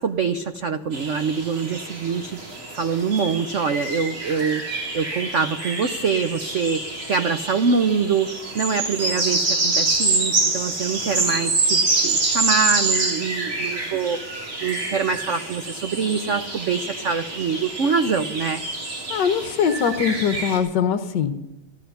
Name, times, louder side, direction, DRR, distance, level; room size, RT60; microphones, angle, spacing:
voice 1, 0.0-2.4 2.7-4.6 4.9-6.8 7.1-14.2 14.6-18.6, right 5 dB, 90° right, 8 dB, 0.6 m, -24 dB
sound 1, 0.9-20.6, right 2 dB, 70° right, 4.3 m, -26 dB
voice 2, 19.1-21.5, left 7 dB, 65° left, 7 dB, 1.3 m, -22 dB
15.0 x 12.0 x 6.8 m, 0.94 s
omnidirectional pair, 2.3 m